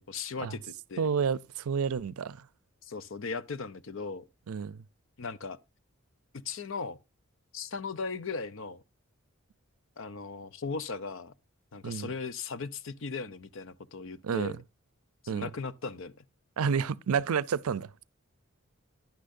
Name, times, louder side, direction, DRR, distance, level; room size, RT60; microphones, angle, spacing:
voice 1, 0.0-1.1 2.8-4.2 5.2-5.6 6.4-7.0 7.5-8.8 10.0-11.3 11.7-14.6 15.2-16.1, left 4 dB, 60° left, 0.6 m, -37 dB
voice 2, 1.0-2.4 4.5-4.8 11.8-12.1 14.2-14.5 15.3-15.5 16.6-17.9, right 6 dB, 85° right, 0.5 m, -30 dB
10.5 x 10.0 x 2.5 m
head